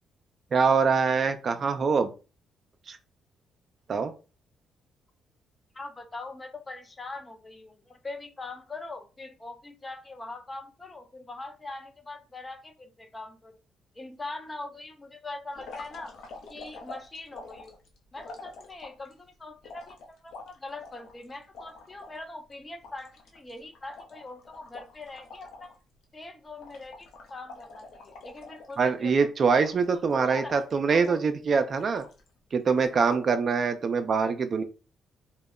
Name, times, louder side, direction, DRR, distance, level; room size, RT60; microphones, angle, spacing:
voice 1, 0.5-2.1 2.9-3.0 3.9-4.1 28.8-32.0 32.5-34.6, right 5 dB, 50° right, 8 dB, 0.4 m, -24 dB
voice 2, 5.7-13.6 13.9-16.1 16.5-17.8 18.1-25.8 26.1-29.3 29.9-31.2, left 2 dB, 25° left, 6 dB, 0.5 m, -42 dB
sound 1, 15.5-19.1 19.6-22.2 22.5-22.6 22.8-25.8 26.0-26.2 26.6-29.1 29.6-30.1 30.5-31.2 31.7-32.3 32.7-33.2, left 3 dB, 75° left, 0.6 m, -46 dB
2.2 x 2.0 x 3.5 m, 0.33 s
cardioid pair, 90°, 0 cm